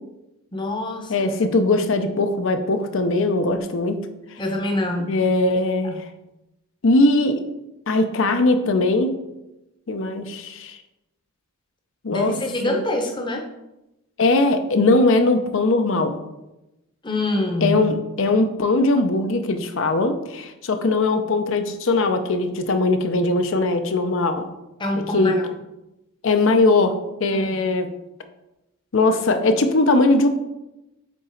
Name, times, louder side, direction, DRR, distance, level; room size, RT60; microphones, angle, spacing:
voice 1, 0.5-1.3 4.4-5.3 12.1-13.5 17.0-17.8 24.8-25.5 27.5-27.6, left 1 dB, 20° left, 3 dB, 0.8 m, -25 dB
voice 2, 1.1-4.0 5.1-6.0 6.8-7.4 7.9-9.1 9.9-10.8 12.0-12.3 12.7-12.8 14.2-16.1 17.6-24.5 25.1-25.3 26.2-27.9 28.9-30.3, left 2 dB, 60° left, 8 dB, 0.6 m, -20 dB
8.3 x 4.0 x 3.9 m, 0.95 s
head